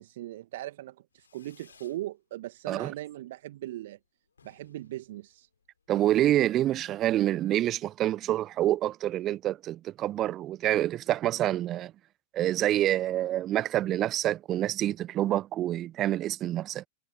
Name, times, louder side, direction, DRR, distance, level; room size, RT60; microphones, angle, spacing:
voice 1, 0.0-4.0 4.4-5.5, right 15 dB, 60° right, 1.4 m, -39 dB
Fireworks, 1.1-2.0 2.4-3.0 3.2-3.3 3.6-3.7 3.9-4.0 4.3-5.9, left 6 dB, 75° left, 2.7 m, -62 dB
voice 2, 5.9-11.9 12.3-16.9, right 13 dB, 30° right, 0.3 m, -27 dB
figure-of-eight pair, 95°, 0 cm